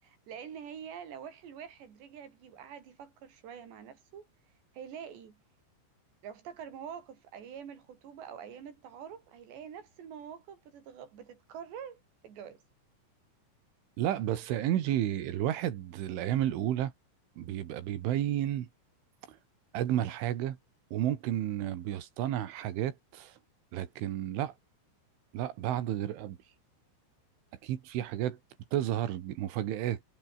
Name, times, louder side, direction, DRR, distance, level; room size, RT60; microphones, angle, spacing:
voice 1, 0.0-4.3 4.7-5.4 6.2-12.6, right 8 dB, 65° right, 6.2 m, -46 dB
voice 2, 14.0-16.9 17.4-18.7 19.3-19.4 19.7-20.6 20.9-23.3 23.7-24.5 25.3-26.4 27.6-28.4 28.7-30.0, right 12 dB, 80° right, 4.6 m, -31 dB
omnidirectional pair, 5.5 m